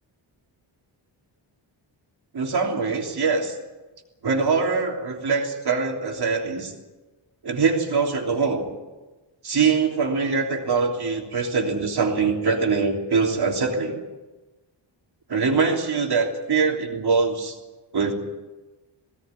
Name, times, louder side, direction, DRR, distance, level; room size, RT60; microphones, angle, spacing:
voice 1, 2.3-3.6 4.2-6.7 7.4-8.7 9.4-14.0 15.3-17.6 17.9-18.1, right 4 dB, 55° right, 1 dB, 3.3 m, -23 dB
19.5 x 17.5 x 9.7 m, 1.2 s
wide cardioid pair, 145°, 47 cm